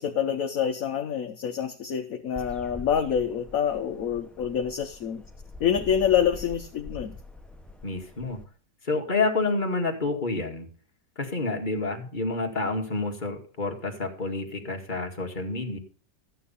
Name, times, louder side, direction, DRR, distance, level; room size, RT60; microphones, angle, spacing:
voice 1, 0.0-5.2 5.6-7.1, left 8 dB, 60° left, 7 dB, 1.2 m, -26 dB
sound 1, 2.4-8.4, left 3 dB, ahead, 0.8 m, -44 dB
voice 2, 7.8-8.4 8.8-10.7 11.2-15.8, left 3 dB, 25° left, 2 dB, 2.1 m, -29 dB
13.5 x 9.2 x 5.5 m, 0.41 s
omnidirectional pair, 1.9 m